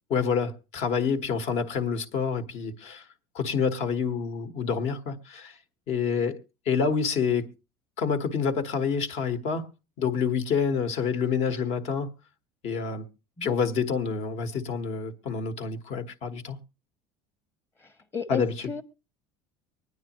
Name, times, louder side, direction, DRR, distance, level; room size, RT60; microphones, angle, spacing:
voice 1, 0.1-3.1 3.3-5.5 5.9-7.5 8.0-9.7 10.0-12.1 12.6-13.0 13.4-16.6 18.3-18.5, left 6 dB, 55° left, 1.4 m, -27 dB
voice 2, 17.8-18.8, left 5 dB, 20° left, 1.1 m, -34 dB
24.0 x 9.6 x 3.0 m
cardioid pair, 125°, 13 cm